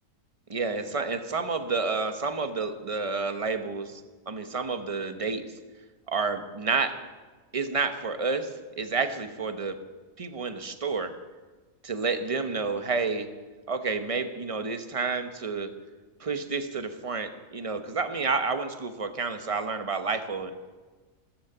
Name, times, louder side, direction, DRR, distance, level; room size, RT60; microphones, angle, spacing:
voice 1, 0.5-4.0 4.3-5.4 6.1-7.0 7.5-8.5 8.8-9.7 10.2-11.1 11.8-13.3 13.7-15.7 16.2-20.5, right 4 dB, 25° right, 8 dB, 0.9 m, -29 dB
14.5 x 13.5 x 6.8 m, 1.4 s
omnidirectional pair, 1.7 m